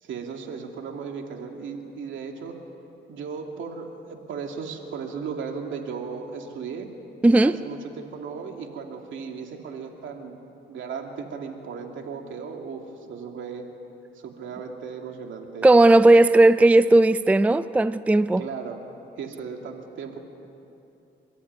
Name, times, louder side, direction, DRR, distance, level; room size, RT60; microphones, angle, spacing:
voice 1, 0.0-2.6 3.1-6.9 7.4-10.4 10.7-13.6 14.2-15.7 18.4-18.8 19.2-20.2, right 6 dB, 75° right, 2.7 m, -36 dB
voice 2, 7.2-7.6 15.6-18.4, right 2 dB, 5° right, 0.4 m, -16 dB
28.0 x 13.5 x 9.6 m
cardioid pair, 90°, 20 cm